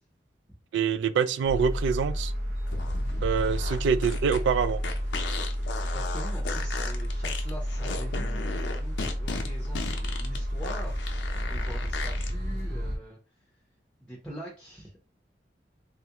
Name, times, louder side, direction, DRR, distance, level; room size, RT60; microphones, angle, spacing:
voice 1, 0.7-2.3 3.2-4.8, right 6 dB, 90° right, 0.3 m, -25 dB
sound 1, 1.4-13.0, equal, 65° right, 0.8 m, -31 dB
sound 2, 2.7-12.3, left 4 dB, 90° left, 0.5 m, -36 dB
voice 2, 5.8-13.5 14.0-15.0, right 1 dB, 5° left, 0.6 m, -44 dB
3.1 x 2.4 x 2.9 m
head